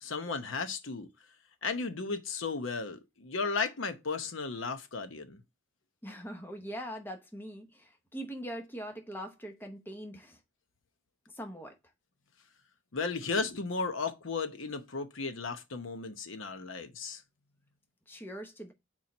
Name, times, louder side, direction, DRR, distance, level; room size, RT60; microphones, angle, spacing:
voice 1, 0.0-1.1 1.6-5.4 12.9-17.2, left 4 dB, 75° left, 0.9 m, -35 dB
voice 2, 6.0-10.4 11.3-11.8 18.1-18.7, equal, 10° left, 0.8 m, -42 dB
4.5 x 4.4 x 5.3 m
head